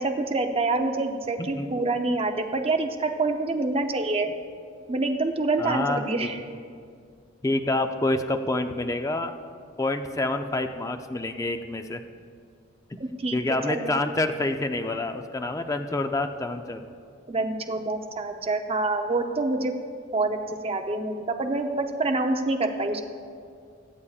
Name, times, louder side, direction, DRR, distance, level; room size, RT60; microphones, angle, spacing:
voice 1, 0.0-4.3 4.9-6.4 13.0-13.4 13.7-13.9 17.3-19.7 20.1-20.4 20.6-23.1, right 2 dB, 30° right, 4 dB, 0.6 m, -26 dB
voice 2, 5.6-6.3 7.4-9.3 9.8-12.0 13.3-16.8, left 2 dB, 15° left, 7 dB, 0.4 m, -27 dB
23.0 x 8.3 x 2.4 m, 2.2 s
head